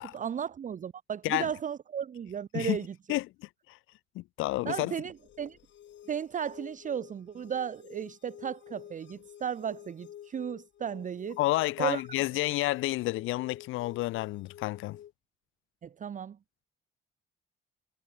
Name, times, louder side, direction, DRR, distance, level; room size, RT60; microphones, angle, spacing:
voice 1, 0.0-2.9 4.7-5.6 6.1-11.4 11.8-12.0 15.8-16.4, right 8 dB, 40° right, 0.7 m, -35 dB
voice 2, 4.1-4.9 11.4-15.0, left 18 dB, 90° left, 0.6 m, -30 dB
sound 1, 5.1-15.1, left 11 dB, 65° left, 1.9 m, -50 dB
cardioid pair, 90°, 20 cm